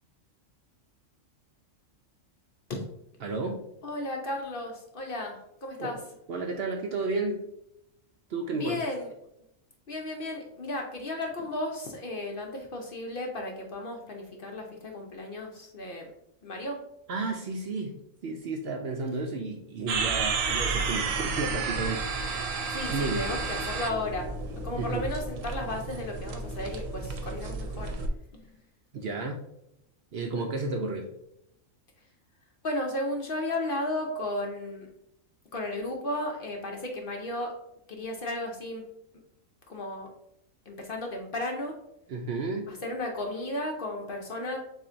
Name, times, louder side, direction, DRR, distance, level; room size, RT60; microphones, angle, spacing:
voice 1, 3.2-3.6 5.8-6.0 6.3-7.4 8.3-8.8 17.1-18.0 18.2-23.3 24.8-25.1 28.9-29.5 30.1-31.1 42.1-42.7, right 3 dB, 65° right, 2 dB, 0.7 m, -32 dB
voice 2, 3.8-6.0 8.5-9.1 9.9-16.1 16.4-16.8 22.7-24.3 24.6-27.9 28.3-28.4 32.6-34.9 35.5-37.6 37.9-38.9 39.7-40.1 40.7-41.8 42.7-44.6, left 1 dB, 55° left, 2 dB, 0.7 m, -34 dB
sound 1, 19.9-28.1, right 4 dB, 80° right, 1.0 m, -32 dB
7.0 x 2.5 x 2.5 m, 0.80 s
omnidirectional pair, 1.4 m